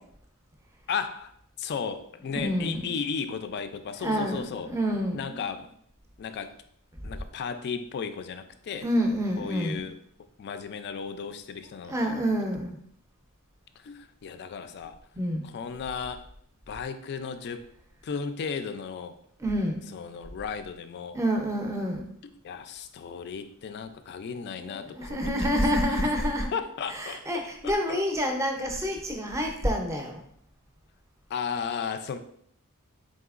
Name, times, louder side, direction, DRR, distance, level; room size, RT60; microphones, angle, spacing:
voice 1, 0.9-1.3 1.6-4.7 5.1-5.7 6.2-6.5 7.0-8.9 9.4-10.0 10.4-12.1 13.8-15.0 15.4-16.3 16.7-17.6 18.0-19.2 19.9-21.2 22.4-26.0 26.5-27.2 27.6-28.0 31.3-32.2, left 6 dB, 50° left, 10 dB, 0.3 m, -35 dB
voice 2, 2.3-2.8 4.0-5.4 8.8-9.8 11.9-12.8 15.2-15.4 19.4-20.0 21.1-22.1 24.5-26.5 26.9-30.2, equal, 15° right, 2 dB, 0.5 m, -28 dB
4.1 x 3.7 x 2.4 m, 0.68 s
head